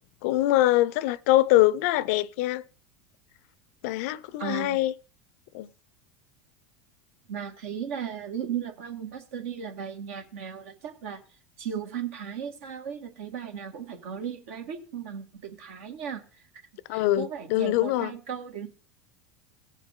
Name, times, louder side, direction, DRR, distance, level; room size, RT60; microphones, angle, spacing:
voice 1, 0.2-2.6 3.8-4.9 5.5-5.7 16.9-18.1, left 16 dB, 65° left, 0.5 m, -23 dB
voice 2, 4.4-4.8 7.3-11.2 11.6-16.4 16.9-18.7, right 8 dB, 75° right, 1.8 m, -36 dB
17.0 x 6.6 x 3.7 m
hypercardioid pair, 95°, 8 cm